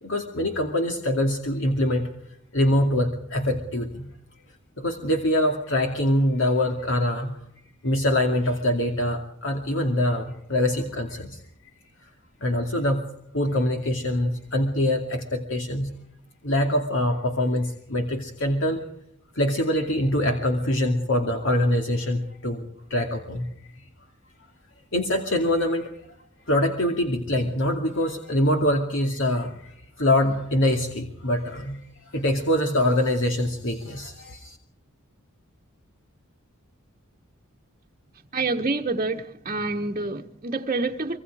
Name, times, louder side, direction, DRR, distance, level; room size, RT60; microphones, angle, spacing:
voice 1, 0.0-2.1 2.5-4.1 4.8-7.4 7.8-11.4 12.4-13.0 13.3-15.9 16.4-18.8 19.3-23.7 24.9-25.9 26.5-31.8 32.1-34.6, left 1 dB, 65° left, 2.5 m, -24 dB
voice 2, 38.3-41.2, right 3 dB, 35° right, 1.2 m, -27 dB
25.5 x 24.0 x 4.9 m
head